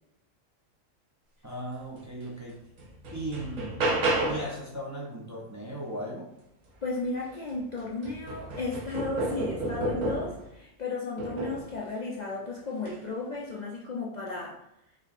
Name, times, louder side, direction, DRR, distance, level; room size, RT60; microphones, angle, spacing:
voice 1, 1.4-2.6 3.1-3.8 4.3-6.3, right 1 dB, 25° right, -4 dB, 0.4 m, -37 dB
sound 1, 2.2-2.3 2.8-4.6 7.0-7.1 7.5-10.5 11.2-11.7 12.7-13.0, right 2 dB, 75° right, 1.3 m, -31 dB
voice 2, 6.8-14.6, left 3 dB, 60° left, -3 dB, 0.4 m, -34 dB
4.9 x 2.8 x 2.5 m, 0.86 s
omnidirectional pair, 1.4 m